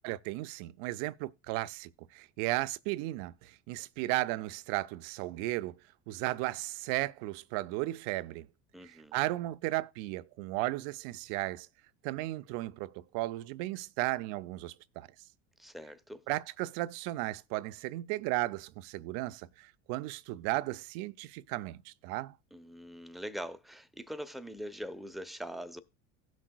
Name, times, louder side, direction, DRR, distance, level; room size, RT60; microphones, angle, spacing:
voice 1, 0.0-5.7 6.1-8.5 8.8-11.7 12.0-15.1 16.3-22.4, right 18 dB, 60° right, 0.5 m, -35 dB
voice 2, 8.7-9.2 15.6-16.2 22.5-25.8, equal, ahead, 0.6 m, -42 dB
17.0 x 6.2 x 2.2 m
hypercardioid pair, 85°, 37 cm